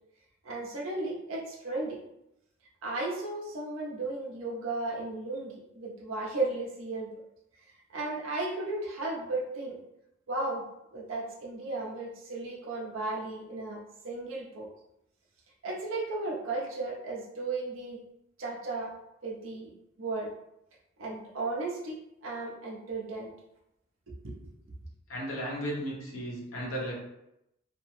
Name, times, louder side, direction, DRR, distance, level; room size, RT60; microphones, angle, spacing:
voice 1, 0.4-2.0 2.8-7.1 7.9-9.8 10.3-10.6 10.9-14.7 15.6-18.0 18.4-18.9 19.2-19.7 20.0-20.3 21.0-22.0 22.2-23.3 24.1-24.4, right 2 dB, 90° right, -3 dB, 0.7 m, -35 dB
voice 2, 25.1-26.9, equal, 90° left, -3 dB, 1.0 m, -35 dB
2.9 x 2.0 x 3.1 m, 0.84 s
head